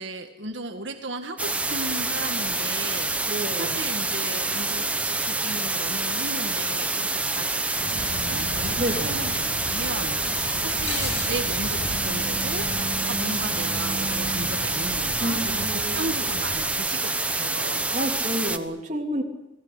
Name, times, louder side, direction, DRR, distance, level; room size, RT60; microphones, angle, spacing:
voice 1, 0.0-12.7 12.9-18.0, right 2 dB, 75° right, 5 dB, 2.0 m, -36 dB
sound 1, 1.4-18.6, right 2 dB, 5° right, 1.0 m, -27 dB
voice 2, 3.2-3.8 8.8-9.2 15.2-16.1 17.9-19.2, equal, 40° right, 2 dB, 3.4 m, -29 dB
sound 2, 7.8-16.7, equal, 65° left, 6.4 m, -35 dB
29.0 x 20.0 x 8.4 m, 0.93 s
head